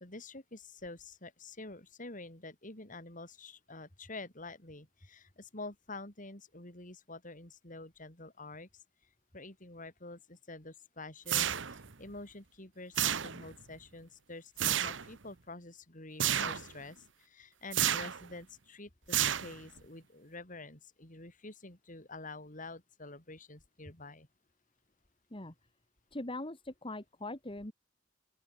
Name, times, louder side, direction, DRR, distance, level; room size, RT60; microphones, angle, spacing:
voice 1, 0.0-8.7 9.3-24.3, left 2 dB, 45° left, 5.9 m, -48 dB
sound 1, 11.3-11.9 12.9-13.6 14.6-15.1 16.2-16.7 17.7-18.2 19.1-19.8, right 10 dB, 80° right, 1.3 m, -31 dB
voice 2, 26.1-27.7, left 2 dB, 30° left, 2.7 m, -41 dB
open air
head